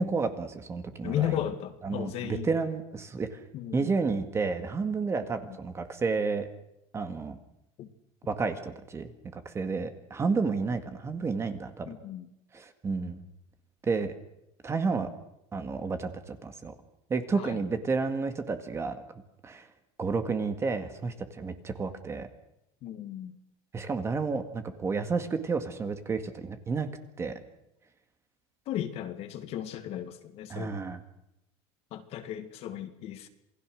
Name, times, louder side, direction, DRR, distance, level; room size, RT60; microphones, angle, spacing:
voice 1, 0.0-1.3 1.8-3.4 3.7-6.5 6.9-7.4 8.3-11.9 12.5-13.2 13.8-14.1 14.6-15.1 15.5-16.7 17.1-19.0 19.4-19.7 20.0-22.3 23.7-26.9 27.2-27.3 30.5-31.0, right 4 dB, 20° right, 8 dB, 1.9 m, -31 dB
voice 2, 1.0-2.5 3.5-3.9 7.8-7.9 11.9-12.3 17.3-17.6 22.8-23.3 28.7-30.8 31.9-33.3, left 11 dB, 50° left, 8 dB, 2.2 m, -35 dB
27.5 x 20.0 x 6.5 m, 0.85 s
cardioid pair, 150°, 14 cm